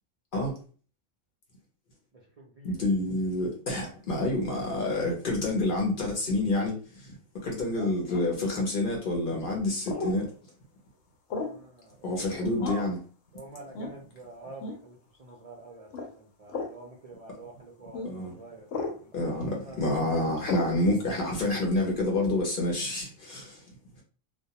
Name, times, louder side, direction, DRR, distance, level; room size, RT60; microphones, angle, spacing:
voice 1, 2.1-2.9 7.7-7.9 11.3-12.9 13.3-19.3 19.6-20.5, right 2 dB, 60° right, 0.4 m, -48 dB
voice 2, 2.6-7.1 7.4-10.3 12.0-13.0 18.0-18.3 19.1-23.6, left 2 dB, 50° left, 0.7 m, -28 dB
sound 1, 8.1-8.4 9.9-10.2 11.3-11.6 12.6-13.0 13.7-14.0 14.6-14.8 15.9-16.1 16.5-16.8 17.9-18.1 18.7-19.0 20.5-20.7, left 3 dB, 85° left, 1.0 m, -34 dB
2.2 x 2.1 x 2.8 m
omnidirectional pair, 1.3 m